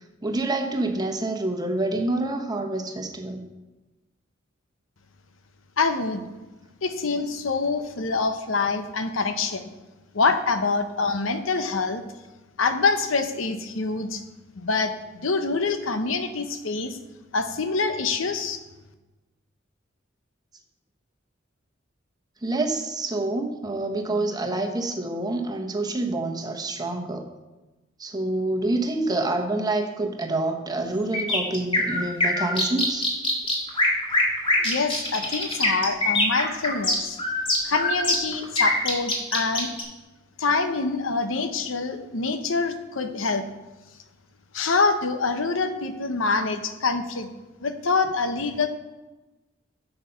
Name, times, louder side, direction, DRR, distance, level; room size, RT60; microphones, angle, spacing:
voice 1, 0.2-3.5 22.4-27.3 28.0-33.1, right 2 dB, 20° right, 4 dB, 1.0 m, -27 dB
voice 2, 5.8-6.3 6.8-9.7 10.1-12.0 12.6-14.2 14.6-17.0 17.3-18.6 34.6-37.2 37.6-39.7 40.4-43.4 44.5-47.3 47.6-48.7, left 4 dB, 85° left, 9 dB, 0.9 m, -25 dB
sound 1, 31.1-39.8, left 1 dB, 25° left, 1.8 m, -23 dB
8.2 x 6.8 x 5.8 m, 1.1 s
head